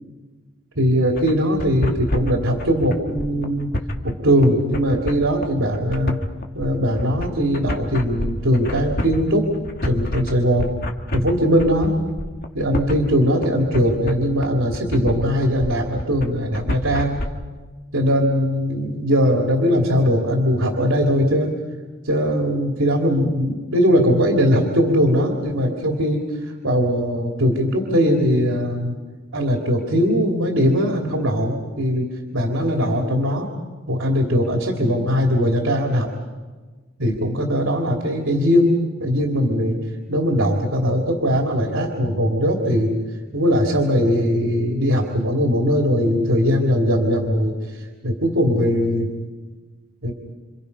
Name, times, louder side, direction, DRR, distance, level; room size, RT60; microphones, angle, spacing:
voice 1, 0.8-3.7 4.0-6.2 6.5-9.5 9.8-10.7 11.1-12.0 12.5-17.2 17.9-21.5 22.0-28.9 29.3-32.1 32.3-33.5 33.9-36.1 37.0-38.7 39.0-39.8 40.1-42.9 43.3-49.1 50.0-50.1, equal, 85° right, 1 dB, 3.0 m, -20 dB
sound 1, 1.1-17.3, left 1 dB, 50° left, 1.9 m, -28 dB
28.5 x 27.5 x 5.6 m, 1.3 s
head